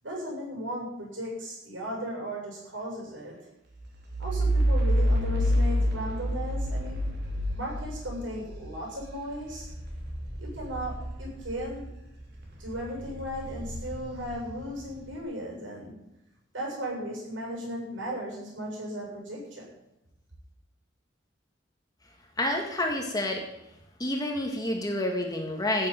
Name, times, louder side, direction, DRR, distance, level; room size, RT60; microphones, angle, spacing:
voice 1, 0.0-3.4 4.2-7.0 7.5-9.7 10.4-11.9 12.6-16.0 16.5-19.7, equal, 80° right, -2 dB, 7.6 m, -36 dB
sound 1, 3.7-12.0 12.4-15.0, equal, 60° right, 3.5 m, -29 dB
voice 2, 22.4-23.4 24.0-25.9, left 1 dB, 20° left, 2 dB, 1.8 m, -29 dB
14.0 x 7.7 x 9.2 m, 0.88 s
head